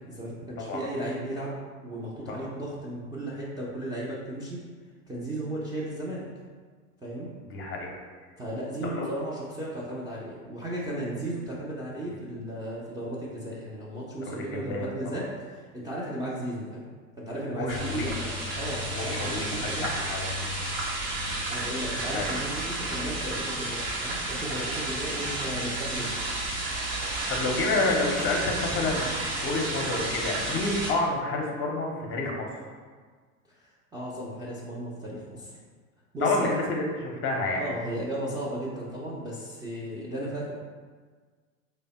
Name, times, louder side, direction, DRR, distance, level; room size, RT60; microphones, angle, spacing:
voice 1, 0.0-4.6 5.1-6.2 7.0-7.3 8.4-16.8 17.2-19.9 21.5-26.1 33.9-35.5 36.1-36.5 37.5-40.5, right 1 dB, 10° right, -8 dB, 0.4 m, -35 dB
voice 2, 7.5-8.0 8.9-9.1 12.1-12.2 14.2-15.2 17.5-18.1 18.9-20.5 22.1-22.3 27.3-32.5 36.2-37.7, left 2 dB, 30° left, 0 dB, 0.6 m, -29 dB
sound 1, 17.7-30.9, right 1 dB, 75° right, 0.9 m, -32 dB
3.3 x 2.1 x 4.0 m, 1.5 s
hypercardioid pair, 85°, 42 cm